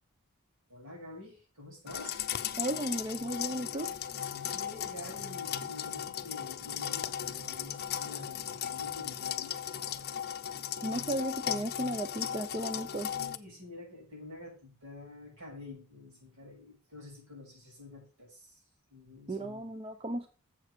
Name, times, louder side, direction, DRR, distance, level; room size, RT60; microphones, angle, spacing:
voice 1, 0.7-2.2 4.3-9.5 12.9-18.6 18.9-19.7, left 2 dB, 70° right, -2 dB, 6.1 m, -48 dB
sound 1, 1.9-13.4, left 10 dB, 50° left, 0.6 m, -37 dB
voice 2, 2.6-3.9 10.8-13.1 19.3-20.3, right 1 dB, 25° right, 8 dB, 0.6 m, -35 dB
7.5 x 6.4 x 6.6 m, 0.36 s
head